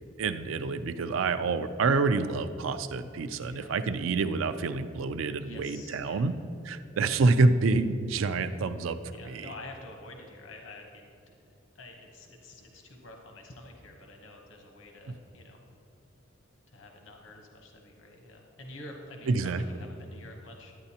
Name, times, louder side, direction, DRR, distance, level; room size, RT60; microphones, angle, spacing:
voice 1, 0.2-6.3 6.7-9.0 9.3-9.5 15.1-15.2 19.3-19.6, right 3 dB, 80° right, 11 dB, 0.4 m, -27 dB
voice 2, 3.4-3.7 5.4-6.3 9.1-15.6 16.7-20.7, left 2 dB, 70° left, 2 dB, 0.9 m, -48 dB
11.5 x 8.9 x 2.8 m, 2.5 s
head